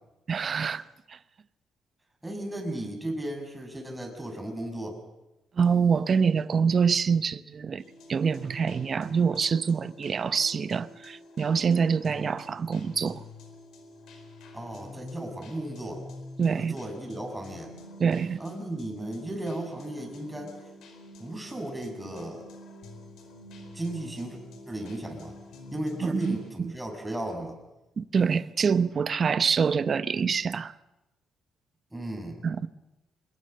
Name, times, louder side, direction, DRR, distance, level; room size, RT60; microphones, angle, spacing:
voice 1, 0.3-1.2 5.6-7.8 8.1-13.2 16.4-16.8 18.0-18.4 26.0-26.7 28.0-30.7 32.4-32.6, right 6 dB, 45° right, 0.8 m, -25 dB
voice 2, 2.2-5.0 14.5-16.0 16.6-17.7 18.4-20.6 21.2-22.4 23.7-24.4 24.7-25.3 25.7-27.5 31.9-32.4, right 1 dB, 10° right, 6.4 m, -35 dB
sound 1, 7.8-26.5, left 1 dB, 80° left, 4.7 m, -47 dB
25.5 x 21.5 x 6.7 m
cardioid pair, 90°, 0 cm